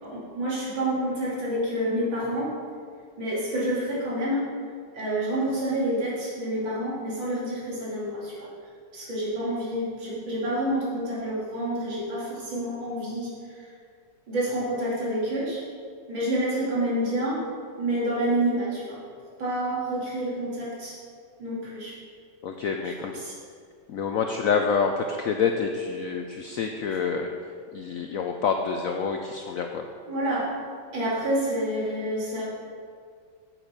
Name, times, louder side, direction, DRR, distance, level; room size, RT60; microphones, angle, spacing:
voice 1, 0.0-2.5 3.2-4.4 4.9-8.5 8.9-13.3 13.6-13.7 14.3-15.6 16.1-17.4 17.8-19.0 19.4-21.0 21.4-22.0 22.8-23.3 30.1-30.5 30.9-32.5, right 1 dB, 80° right, -6 dB, 3.4 m, -28 dB
voice 2, 22.4-23.2 23.9-27.3 27.7-29.8, left 5 dB, 75° left, 4 dB, 0.7 m, -27 dB
8.9 x 8.0 x 5.2 m, 2.1 s
omnidirectional pair, 2.1 m